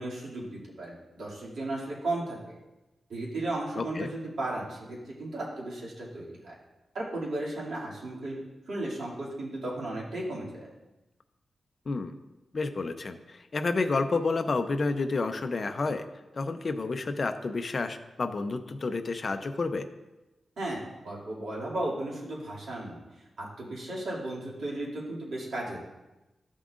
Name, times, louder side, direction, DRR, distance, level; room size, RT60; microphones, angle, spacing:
voice 1, 0.0-2.6 3.1-6.5 6.9-8.4 8.7-10.7 20.6-25.8, right 1 dB, 75° right, -6 dB, 2.5 m, -35 dB
voice 2, 3.8-4.1 11.9-12.1 12.5-16.0 16.3-19.9, left 3 dB, 35° left, 7 dB, 0.5 m, -30 dB
13.5 x 7.4 x 2.5 m, 1.0 s
wide cardioid pair, 165°, 0 cm